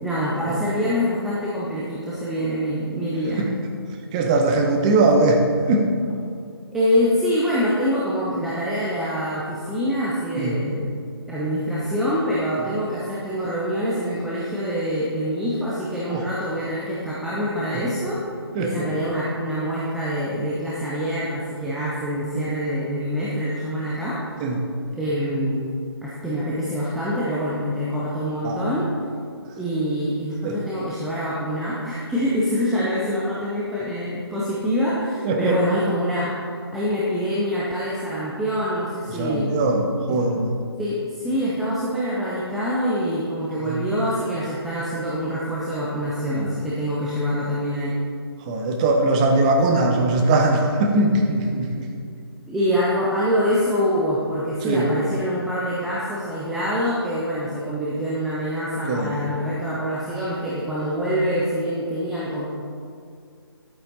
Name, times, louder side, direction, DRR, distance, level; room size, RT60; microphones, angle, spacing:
voice 1, 0.0-3.4 6.7-10.9 11.3-18.2 18.6-24.2 24.9-25.7 26.0-28.9 29.6-36.3 36.7-39.5 40.1-40.2 40.8-47.9 52.5-62.5, equal, ahead, -8 dB, 0.3 m, -25 dB
voice 2, 4.1-5.4 5.7-5.9 10.4-10.6 16.1-16.3 17.7-17.8 18.5-18.9 24.4-24.6 28.4-28.6 30.4-30.6 35.2-35.6 39.1-40.6 43.6-43.8 46.3-46.6 48.5-51.9 54.6-54.9 58.9-59.1, right 2 dB, 15° right, 2 dB, 0.8 m, -21 dB
10.5 x 8.5 x 4.0 m, 2.3 s
figure-of-eight pair, 145°, 14 cm